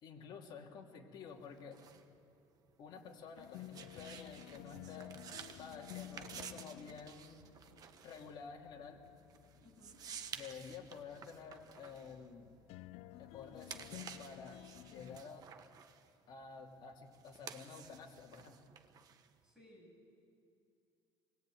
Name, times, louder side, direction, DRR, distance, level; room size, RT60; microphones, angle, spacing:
voice 1, 0.0-1.8 2.8-5.1 5.5-7.4 8.0-9.0 10.3-12.5 13.2-15.4 16.3-18.6, left 5 dB, 45° left, 0 dB, 3.0 m, -51 dB
sound 1, 1.3-13.0 13.4-19.5, right 7 dB, 40° right, 1.2 m, -53 dB
sound 2, 3.4-15.2, left 15 dB, 70° left, 0.6 m, -54 dB
voice 2, 9.6-10.1 19.4-20.0, equal, 5° right, -3 dB, 7.6 m, -61 dB
25.5 x 21.0 x 9.3 m, 2.5 s
cardioid pair, 160°, 10 cm